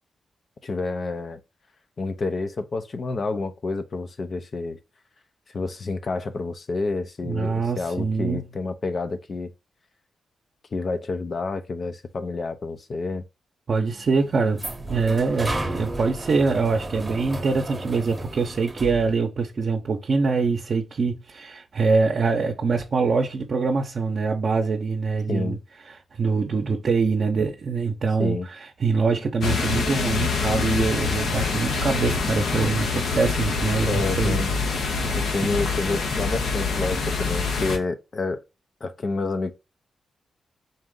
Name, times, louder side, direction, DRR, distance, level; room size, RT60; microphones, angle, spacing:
voice 1, 0.6-1.4 2.0-4.8 5.5-9.5 10.7-13.2 25.3-25.6 28.2-28.5 33.8-34.6 35.2-38.4 38.8-39.5, left 3 dB, 50° left, 0.6 m, -29 dB
voice 2, 7.2-8.5 13.7-25.6 25.9-34.4 34.9-35.2, right 4 dB, 55° right, 0.7 m, -24 dB
sound 1, 13.9-19.1, right 1 dB, 20° right, 0.9 m, -33 dB
sound 2, 29.4-37.8, left 4 dB, 80° left, 0.9 m, -25 dB
4.0 x 2.5 x 3.7 m
cardioid pair, 70°, 0 cm